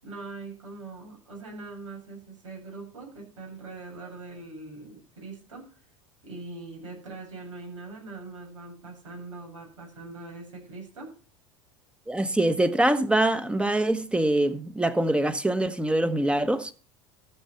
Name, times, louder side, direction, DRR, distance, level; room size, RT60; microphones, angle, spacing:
voice 1, 0.0-5.8 6.2-11.1, right 3 dB, 85° right, 7.3 m, -42 dB
voice 2, 12.1-16.7, right 1 dB, 5° right, 1.3 m, -24 dB
14.0 x 7.4 x 5.7 m
hypercardioid pair, 85°, 16 cm